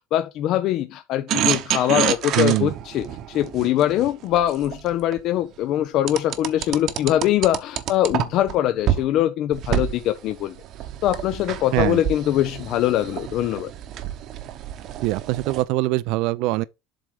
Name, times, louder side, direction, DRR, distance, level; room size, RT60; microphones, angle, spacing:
voice 1, 0.1-10.6 11.0-13.7, left 12 dB, 50° left, 0.5 m, -22 dB
sound 1, 1.3-5.2 6.1-8.5 8.9-9.0 9.5-15.6, right 11 dB, 50° right, 0.9 m, -28 dB
voice 2, 2.4-2.7 11.7-12.0 15.0-16.6, right 18 dB, 65° right, 0.4 m, -22 dB
7.6 x 3.6 x 5.0 m
cardioid pair, 140°, 0 cm